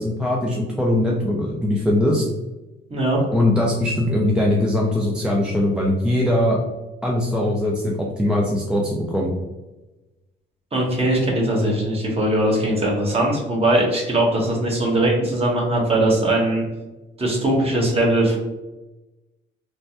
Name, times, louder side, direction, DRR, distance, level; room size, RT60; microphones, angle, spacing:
voice 1, 0.0-2.2 3.3-6.6 7.0-9.3, left 1 dB, 5° right, -2 dB, 0.4 m, -21 dB
voice 2, 10.7-16.6 17.2-18.4, right 1 dB, 30° right, -2 dB, 1.1 m, -20 dB
3.2 x 2.2 x 2.7 m, 1.1 s
cardioid pair, 90°, 20 cm